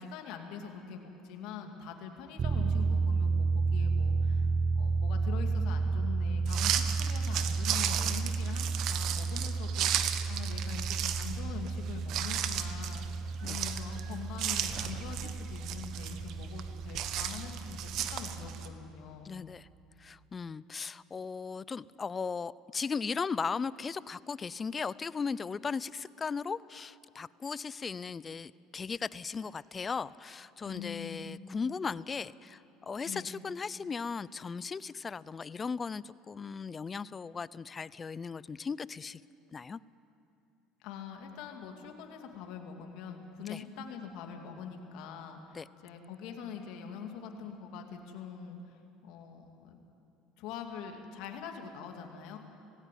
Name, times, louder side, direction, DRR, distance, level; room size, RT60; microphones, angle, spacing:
voice 1, 0.0-4.5 4.7-13.1 13.4-19.3 30.6-31.4 33.1-33.3 40.8-49.8 50.4-52.4, left 6 dB, 70° left, 3 dB, 2.5 m, -44 dB
sound 1, 2.4-18.7, right 4 dB, 35° right, 0.9 m, -32 dB
sound 2, 6.5-18.7, right 10 dB, 60° right, 1.2 m, -35 dB
voice 2, 19.2-19.7 20.0-39.2 39.5-39.8 43.4-43.6 45.5-45.7, left 5 dB, 25° left, 19 dB, 0.5 m, -37 dB
18.5 x 16.5 x 9.3 m, 2.8 s
supercardioid pair, 105°, 0 cm